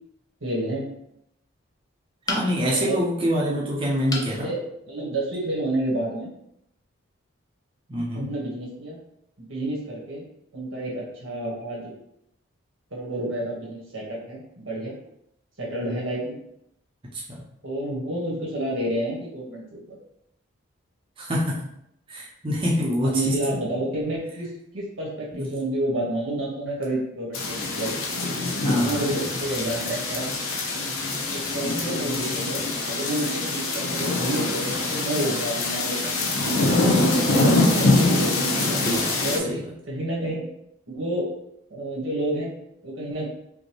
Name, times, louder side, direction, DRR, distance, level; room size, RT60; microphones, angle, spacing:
voice 1, 0.4-0.9 2.7-3.0 4.1-6.3 8.1-9.0 9.4-10.2 10.5-11.9 12.9-15.0 15.6-16.4 17.6-19.8 23.0-28.1 28.7-30.3 30.7-30.9 31.3-36.3 36.6-38.3 38.7-38.8 39.2-39.5 39.9-40.5 40.9-41.3 41.7-42.5 42.8-43.3, right 1 dB, 75° right, -3 dB, 1.4 m, -29 dB
sound 1, 2.3-2.8 4.1-4.4 4.9-5.0 5.4-5.5, left 3 dB, 15° left, 0.4 m, -31 dB
voice 2, 2.3-4.5 7.9-8.3 17.1-17.2 21.2-21.6 22.1-23.4 25.3-25.5 28.6-29.0 38.8-39.2 39.4-39.6, equal, 25° right, -4 dB, 0.7 m, -25 dB
sound 2, 27.3-39.4, left 2 dB, 85° left, 0.6 m, -24 dB
5.1 x 2.2 x 3.0 m, 0.77 s
head